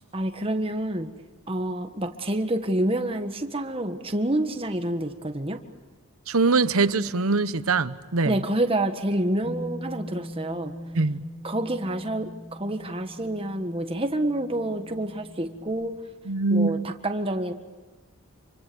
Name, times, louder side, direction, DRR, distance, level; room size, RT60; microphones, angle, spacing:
voice 1, 0.1-1.1 1.5-5.6 8.3-10.7 11.4-15.9 16.5-17.5, right 1 dB, 25° right, 6 dB, 1.6 m, -28 dB
voice 2, 6.3-8.4 10.9-11.2 16.3-16.9, right 3 dB, 85° right, 14 dB, 1.0 m, -23 dB
Bass guitar, 9.4-15.7, equal, 40° left, 7.8 m, -41 dB
28.0 x 25.0 x 7.0 m, 1.3 s
head